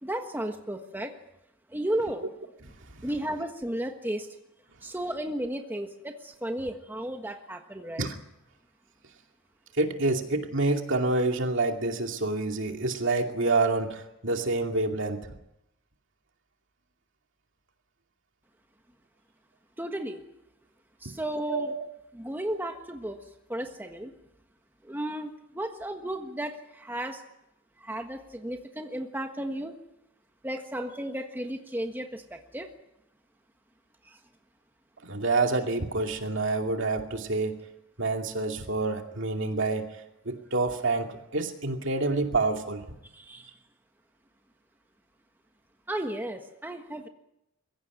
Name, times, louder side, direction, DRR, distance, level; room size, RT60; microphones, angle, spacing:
voice 1, 0.0-1.1 1.7-2.2 3.0-4.3 4.8-8.0 19.8-20.2 21.0-21.7 22.1-23.2 23.5-24.1 24.8-27.2 27.8-29.8 30.4-32.7 34.0-34.2 43.1-43.6 45.9-47.1, right 1 dB, 10° right, 4 dB, 1.4 m, -34 dB
voice 2, 9.7-15.3 21.5-21.9 35.0-37.6 38.0-39.9 40.2-42.8, right 3 dB, 60° right, 3 dB, 2.6 m, -27 dB
22.5 x 16.0 x 9.6 m, 0.86 s
head